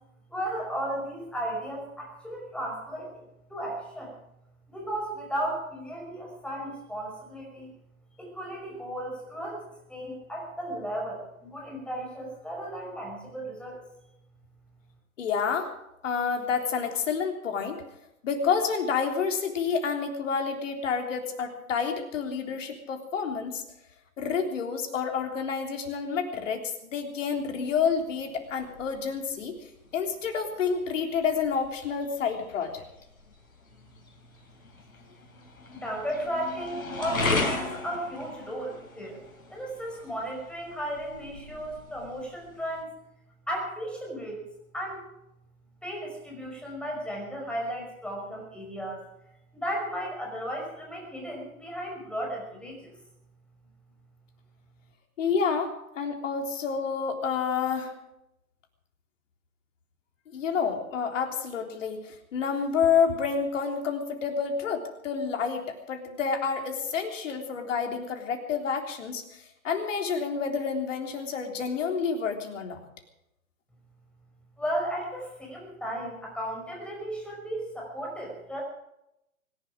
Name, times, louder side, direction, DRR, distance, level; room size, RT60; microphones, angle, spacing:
voice 1, 0.3-4.1 4.7-7.7 8.2-9.6 9.9-13.8 35.7-39.2 39.5-42.9 43.5-44.4 44.7-45.0 45.8-49.0 49.5-52.9 74.6-78.6, right 1 dB, ahead, -1 dB, 5.5 m, -35 dB
voice 2, 15.2-15.7 16.0-17.8 18.2-23.6 24.2-29.6 29.9-32.8 55.2-57.9 60.3-72.8, left 6 dB, 60° left, 3 dB, 3.5 m, -29 dB
sound 1, 27.3-42.8, left 3 dB, 75° left, 5.0 m, -37 dB
24.5 x 11.5 x 5.0 m, 0.85 s
hypercardioid pair, 125°, 42 cm